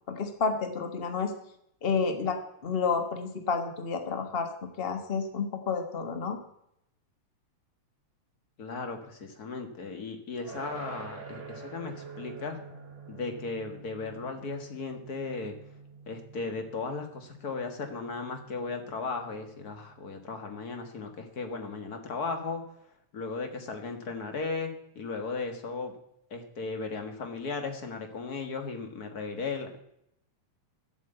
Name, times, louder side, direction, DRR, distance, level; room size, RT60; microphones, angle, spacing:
voice 1, 0.1-1.3 1.8-6.4, left 5 dB, 90° left, 6 dB, 0.5 m, -30 dB
voice 2, 8.6-12.6 13.1-15.6 16.1-22.6 23.1-25.9 26.3-29.8, left 4 dB, 40° left, 6 dB, 1.5 m, -36 dB
sound 1, 10.4-21.4, right 5 dB, 30° right, 1.8 m, -48 dB
12.5 x 8.5 x 8.0 m, 0.76 s
omnidirectional pair, 3.4 m